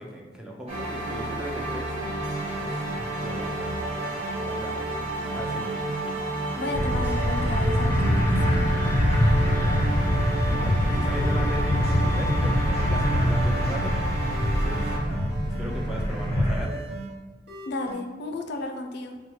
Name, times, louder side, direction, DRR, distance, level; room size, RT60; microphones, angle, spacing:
voice 1, 0.0-1.9 2.6-4.1 4.4-4.9 5.3-5.8 9.1-13.9 14.5-16.8, equal, 5° right, -2 dB, 0.4 m, -38 dB
sound 1, 0.7-15.0, right 2 dB, 35° right, 0.8 m, -31 dB
sound 2, 1.6-4.4 4.8-7.6 7.9-10.7 11.1-13.9 14.3-17.1 17.5-17.9, right 3 dB, 60° right, 1.0 m, -37 dB
voice 2, 6.6-8.6 17.7-19.2, left 2 dB, 60° left, 4 dB, 0.4 m, -33 dB
sound 3, 6.7-16.6, left 1 dB, 20° left, 0.9 m, -24 dB
5.4 x 2.2 x 3.1 m, 1.3 s
head